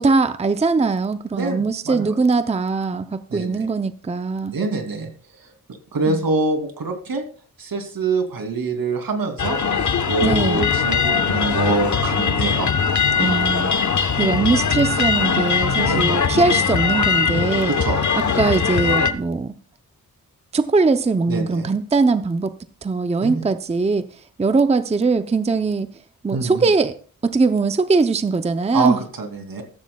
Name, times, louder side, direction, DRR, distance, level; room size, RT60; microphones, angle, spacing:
voice 1, 0.0-4.6 6.1-6.2 10.2-10.6 13.2-13.7 14.2-17.7 18.1-19.6 20.5-24.1 24.4-25.9 26.2-27.0 27.2-29.0, right 4 dB, 20° right, 10 dB, 0.5 m, -21 dB
voice 2, 1.3-2.2 3.3-3.7 4.5-5.1 5.4-5.5 5.9-7.2 7.6-13.0 15.8-16.2 17.7-18.0 21.3-21.7 23.2-23.4 26.3-26.7 28.7-29.6, right 3 dB, 75° right, 5 dB, 2.7 m, -25 dB
sound 1, 9.4-19.1, left 6 dB, 55° left, 1.0 m, -20 dB
14.5 x 14.0 x 2.3 m, 0.43 s
wide cardioid pair, 150°, 35 cm